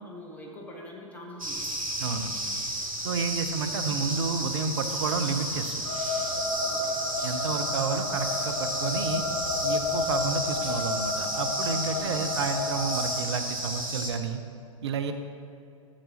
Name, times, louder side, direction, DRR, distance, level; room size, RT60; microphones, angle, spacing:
voice 1, 0.0-1.7 6.7-7.1 12.0-12.3, equal, 10° left, -1 dB, 1.3 m, -44 dB
sound 1, 1.4-14.1, right 1 dB, 85° right, 1.5 m, -32 dB
voice 2, 2.0-2.3 3.0-5.9 7.2-9.2 9.6-14.4 14.8-15.1, right 5 dB, 55° right, 7 dB, 0.7 m, -30 dB
sound 2, 5.8-13.0, left 3 dB, 75° left, 2.1 m, -31 dB
12.5 x 6.8 x 2.9 m, 2.6 s
figure-of-eight pair, 105°, 17 cm